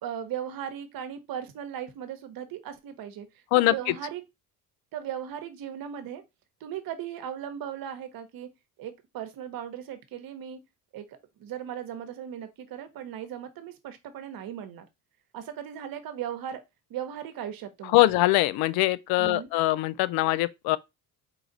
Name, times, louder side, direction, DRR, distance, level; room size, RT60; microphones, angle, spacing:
voice 1, 0.0-3.3 3.5-4.2 4.9-6.2 6.6-8.5 8.8-10.6 10.9-14.9 15.3-16.6 16.9-17.9 19.2-19.5, right 9 dB, 65° right, 1.0 m, -37 dB
voice 2, 17.9-20.8, left 17 dB, 75° left, 0.5 m, -22 dB
4.6 x 2.4 x 3.9 m
supercardioid pair, 80°, 38 cm